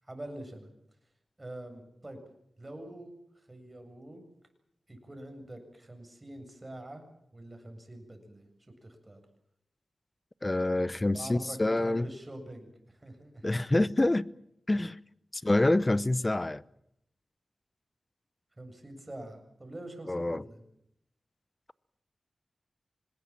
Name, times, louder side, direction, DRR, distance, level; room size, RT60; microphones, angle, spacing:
voice 1, 0.0-0.7 1.4-2.2 2.6-4.2 4.9-7.0 7.3-8.5 8.8-9.2 11.1-13.6 18.6-20.6, right 1 dB, 30° right, 7.7 m, -45 dB
voice 2, 10.4-12.1 13.4-14.3 14.7-15.0 15.3-16.6 20.1-20.4, left 2 dB, 30° left, 0.8 m, -26 dB
25.5 x 20.0 x 7.6 m
cardioid pair, 45°, 0 cm